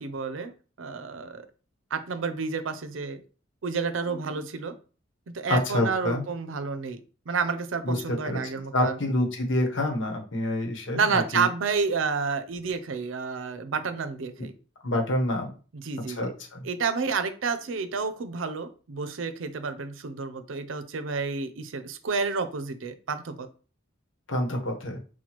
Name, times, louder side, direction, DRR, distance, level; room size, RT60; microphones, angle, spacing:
voice 1, 0.0-1.5 1.9-3.2 3.6-4.7 5.3-7.0 7.3-9.0 10.9-14.5 15.7-16.3 16.6-23.5, right 5 dB, 80° right, 11 dB, 0.5 m, -30 dB
voice 2, 5.5-6.2 7.8-8.4 8.7-11.5 14.8-15.5 16.1-16.7 24.3-25.0, left 1 dB, 70° left, 2 dB, 1.0 m, -27 dB
6.0 x 2.2 x 2.9 m, 0.37 s
head